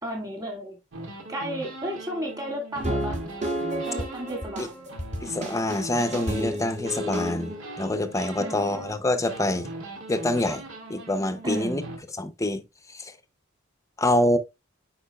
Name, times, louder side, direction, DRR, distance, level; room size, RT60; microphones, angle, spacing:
voice 1, 0.0-0.8 1.3-3.2 3.8-4.9 8.4-8.8 11.4-11.9, equal, 20° right, 2.1 m, -33 dB
sound 1, 0.9-6.6 6.9-9.0 9.3-12.0, right 1 dB, 75° right, 2.1 m, -40 dB
sound 2, 2.7-7.7, equal, 35° right, 1.8 m, -31 dB
voice 2, 5.2-9.7 10.1-10.6 10.9-11.8 12.2-12.6 12.9-13.1 14.0-14.4, left 1 dB, 15° left, 0.7 m, -26 dB
8.5 x 5.0 x 2.3 m
head